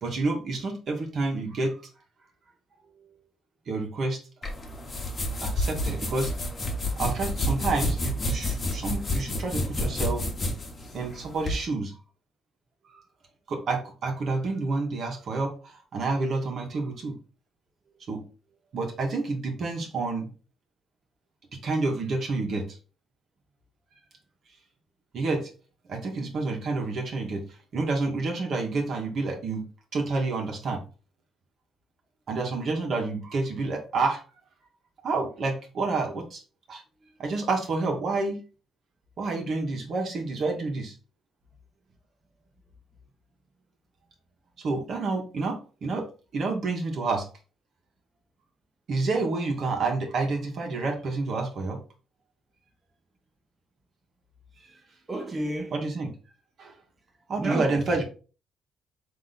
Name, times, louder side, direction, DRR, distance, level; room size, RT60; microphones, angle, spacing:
voice 1, 0.0-1.7 3.7-4.2 5.4-6.3 7.0-10.2 10.9-11.9 12.9-13.0 13.5-17.1 18.1-18.2 18.7-20.3 21.6-22.6 25.1-25.5 25.9-27.4 27.7-29.6 29.9-30.8 32.3-34.2 35.0-36.4 36.7-36.8 37.2-38.4 39.2-40.9 44.6-46.0 46.3-47.2 48.9-51.8 55.7-56.1 56.6-56.7 57.3-58.0, right 3 dB, 60° right, 1.3 m, -29 dB
voice 2, 2.8-3.2 55.1-55.7 57.4-57.8, right 1 dB, 25° right, 1.0 m, -32 dB
sound 1, 4.4-11.6, left 1 dB, 35° left, 1.1 m, -29 dB
3.7 x 2.9 x 4.1 m
cardioid pair, 90°, 0 cm